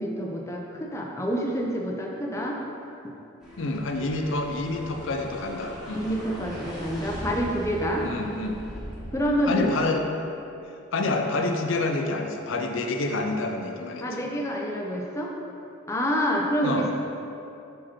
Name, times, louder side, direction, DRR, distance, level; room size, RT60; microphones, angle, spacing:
voice 1, 0.0-2.6 3.0-3.1 5.9-8.0 9.1-9.8 14.0-15.3 15.9-16.9, equal, 15° left, -1 dB, 0.5 m, -27 dB
sound 1, 3.4-9.7, equal, 5° right, 1.3 m, -40 dB
voice 2, 3.6-6.1 8.0-8.6 9.5-10.0 10.9-14.3 16.6-16.9, left 2 dB, 70° left, 3 dB, 0.5 m, -28 dB
5.8 x 4.9 x 4.3 m, 2.7 s
head